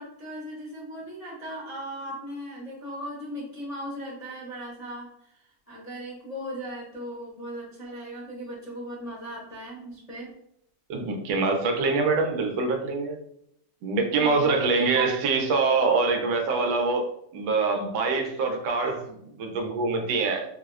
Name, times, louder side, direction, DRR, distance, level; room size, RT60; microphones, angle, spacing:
voice 1, 0.0-5.4 5.7-10.3 14.2-15.1, right 1 dB, 30° left, -8 dB, 0.6 m, -37 dB
voice 2, 10.9-13.2 13.8-17.1 17.3-20.5, right 3 dB, 80° right, 3 dB, 1.4 m, -25 dB
4.6 x 2.1 x 2.3 m, 0.73 s
omnidirectional pair, 2.1 m